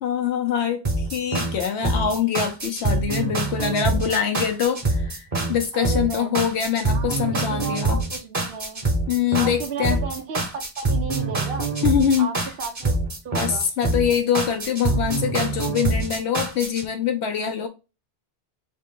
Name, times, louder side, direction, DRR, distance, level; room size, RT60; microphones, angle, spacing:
voice 1, 0.0-8.0 9.1-10.0 11.8-12.3 13.3-17.7, left 8 dB, 85° left, 1.0 m, -24 dB
sound 1, 0.8-16.8, right 2 dB, 35° right, 1.2 m, -25 dB
voice 2, 3.9-4.3 5.7-6.5 6.9-8.8 9.3-11.7 12.2-13.0 13.2-13.7, right 5 dB, 65° right, 0.9 m, -34 dB
4.1 x 3.2 x 3.7 m
omnidirectional pair, 1.1 m